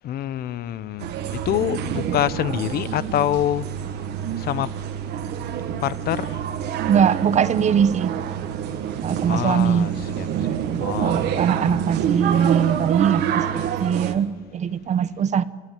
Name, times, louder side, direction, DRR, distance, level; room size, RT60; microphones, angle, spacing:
voice 1, 0.0-3.7 4.4-4.7 5.8-6.4 9.3-10.5 10.8-11.5, left 11 dB, 65° left, 0.8 m, -26 dB
sound 1, 1.0-14.1, right 9 dB, 80° right, 1.7 m, -27 dB
voice 2, 6.9-8.1 9.0-9.9 11.0-15.4, right 8 dB, 45° right, 1.0 m, -21 dB
29.5 x 12.5 x 9.4 m
cardioid pair, 110°, 17 cm